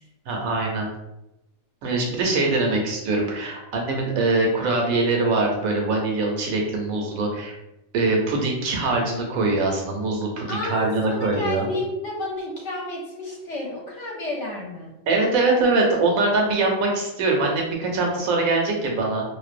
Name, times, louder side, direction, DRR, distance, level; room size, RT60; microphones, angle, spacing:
voice 1, 0.3-0.9 1.8-7.5 7.9-11.7 15.1-19.2, right 3 dB, 85° right, 0 dB, 1.1 m, -23 dB
voice 2, 10.5-14.9, left 2 dB, 65° left, -3 dB, 0.9 m, -31 dB
2.6 x 2.0 x 2.4 m, 0.89 s
omnidirectional pair, 1.4 m